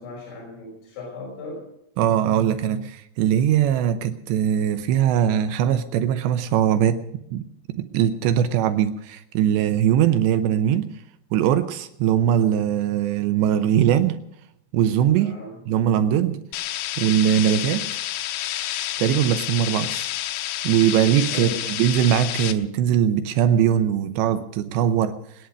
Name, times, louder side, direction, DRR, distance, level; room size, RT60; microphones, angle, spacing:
voice 1, 0.0-1.7 15.1-15.6 21.3-21.8, left 2 dB, 60° left, -2 dB, 7.9 m, -37 dB
voice 2, 2.0-7.0 7.3-10.9 11.3-14.2 14.7-15.3 15.7-16.4 17.0-18.0 19.0-20.1 20.6-25.5, right 10 dB, 85° right, 9 dB, 2.5 m, -21 dB
sound 1, 16.5-22.5, left 13 dB, 75° left, 2.9 m, -29 dB
21.5 x 10.5 x 6.3 m, 0.77 s
omnidirectional pair, 6.0 m